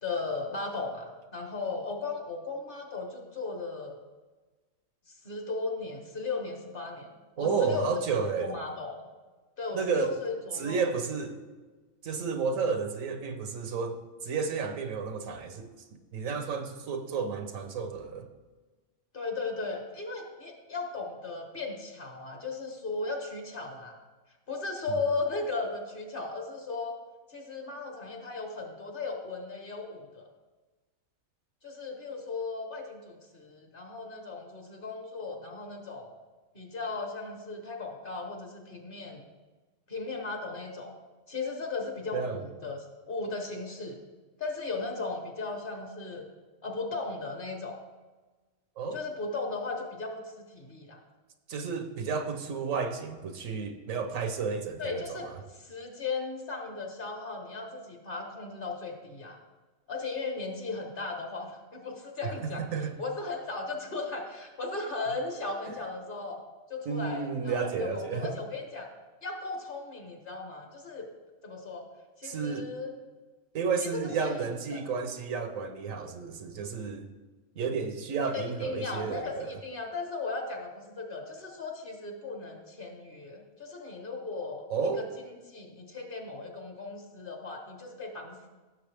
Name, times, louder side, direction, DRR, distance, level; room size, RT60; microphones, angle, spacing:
voice 1, 0.0-4.0 5.1-7.9 8.4-9.0 9.6-10.9 19.1-23.9 24.5-27.0 27.3-30.3 31.6-36.1 36.5-39.2 39.9-40.9 41.3-44.0 44.4-46.3 46.6-47.8 48.9-51.0 54.8-59.4 59.9-62.6 63.0-66.4 66.7-68.9 69.2-71.1 71.4-71.9 72.2-72.9 73.8-74.8 78.2-84.6 85.0-85.1 85.5-88.5, left 3 dB, 45° left, 2 dB, 1.6 m, -36 dB
voice 2, 7.4-8.6 9.7-10.2 10.5-11.4 12.0-15.7 16.1-18.3 42.1-42.4 48.8-49.0 51.5-55.4 62.2-62.9 65.7-65.8 66.9-68.4 72.2-72.7 73.5-77.1 77.6-79.6 84.7-85.0, right 5 dB, 85° right, 7 dB, 1.3 m, -32 dB
15.5 x 6.9 x 3.5 m, 1.3 s
omnidirectional pair, 1.3 m